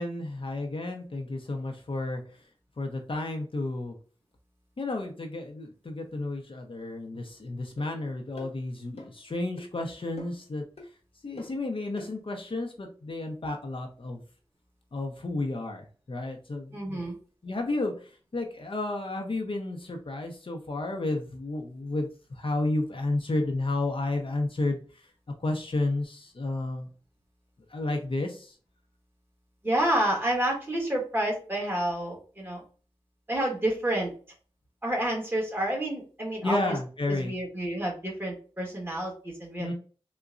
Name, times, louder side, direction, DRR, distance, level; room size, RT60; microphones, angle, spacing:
voice 1, 0.0-2.2 2.8-4.0 4.8-10.6 11.2-14.2 14.9-17.1 17.4-24.8 25.4-26.9 27.7-28.5 36.4-37.3 39.6-39.7, left 2 dB, 55° left, 2 dB, 0.6 m, -32 dB
sound 1, 7.8-7.9 8.4-8.5 9.0-9.2 9.6-9.7 10.2-10.5 10.8-10.9 11.4-11.6 12.0-12.1, left 2 dB, 75° left, 1.0 m, -45 dB
voice 2, 16.7-17.2 29.6-32.6 33.3-34.1 34.8-36.8 37.1-39.7, right 1 dB, 20° right, -2 dB, 1.2 m, -29 dB
3.8 x 2.1 x 2.4 m, 0.38 s
wide cardioid pair, 75°, 10 cm